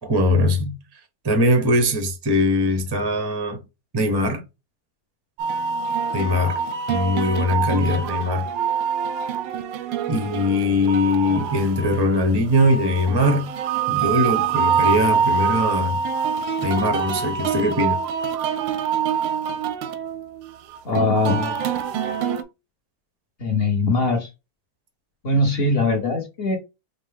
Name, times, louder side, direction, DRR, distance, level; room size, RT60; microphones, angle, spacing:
voice 1, 0.0-0.8 1.2-3.6 3.9-4.4 6.1-6.6 6.9-8.5 10.1-13.5 13.9-16.0 16.6-18.0, left 1 dB, 35° right, 0.4 m, -21 dB
sound 1, 5.4-22.4, right 6 dB, 85° right, 1.3 m, -25 dB
voice 2, 20.8-21.6 23.4-24.3 25.2-26.6, left 2 dB, 45° left, 0.9 m, -21 dB
5.2 x 2.1 x 3.4 m
omnidirectional pair, 2.0 m